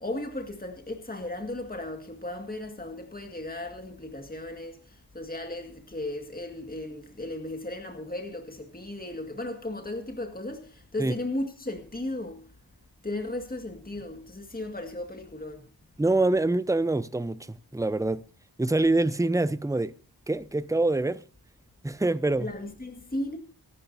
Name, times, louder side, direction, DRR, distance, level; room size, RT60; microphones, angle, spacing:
voice 1, 0.0-4.8 5.1-12.4 13.0-15.7 22.4-23.4, left 1 dB, 20° left, 2.0 m, -35 dB
voice 2, 16.0-18.2 18.6-19.9 20.3-21.2 21.8-22.5, right 2 dB, 10° right, 0.6 m, -25 dB
24.0 x 11.5 x 2.7 m
wide cardioid pair, 65°, 41 cm